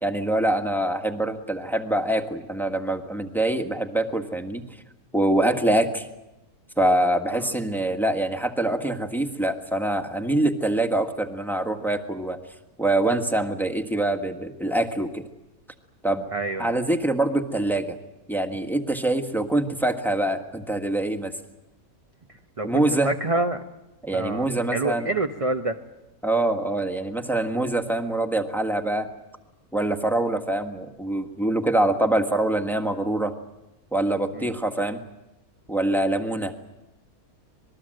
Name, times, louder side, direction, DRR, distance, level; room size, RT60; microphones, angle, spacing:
voice 1, 0.0-4.6 5.1-6.1 6.8-12.4 12.8-15.2 16.0-16.2 16.6-17.9 18.3-21.3 22.6-23.1 24.0-25.1 26.2-29.1 29.7-33.3 33.9-35.0 35.7-36.5, right 1 dB, ahead, 6 dB, 1.4 m, -24 dB
voice 2, 16.3-16.7 22.6-23.6 24.1-25.8 34.3-34.5, right 2 dB, 30° right, 6 dB, 0.8 m, -27 dB
26.5 x 20.5 x 7.8 m, 0.95 s
omnidirectional pair, 1.6 m